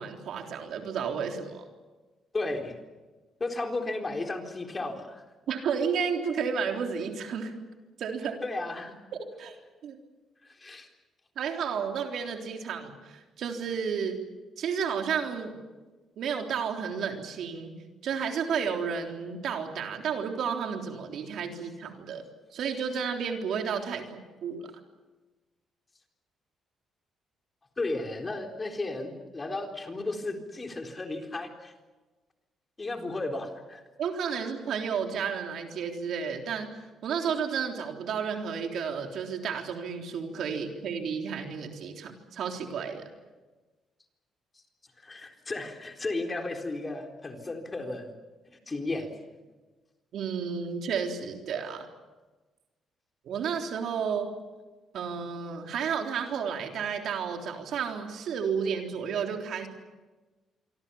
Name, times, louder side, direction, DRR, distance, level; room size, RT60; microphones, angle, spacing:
voice 1, 0.0-1.6 5.5-7.5 8.0-8.4 9.4-9.6 9.8-10.0 11.4-14.2 14.6-15.5 16.2-17.8 18.0-22.2 22.5-24.7 34.0-36.7 37.0-43.0 50.1-51.9 53.3-54.3 54.9-59.7, right 6 dB, 70° right, 3 dB, 3.6 m, -32 dB
voice 2, 2.3-2.7 3.4-5.2 8.4-8.9 10.4-10.9 27.8-31.7 32.8-33.8 45.0-48.1 48.5-49.1, left 2 dB, 25° left, 4 dB, 4.1 m, -34 dB
26.5 x 24.5 x 7.1 m, 1.2 s
cardioid pair, 90°, 0 cm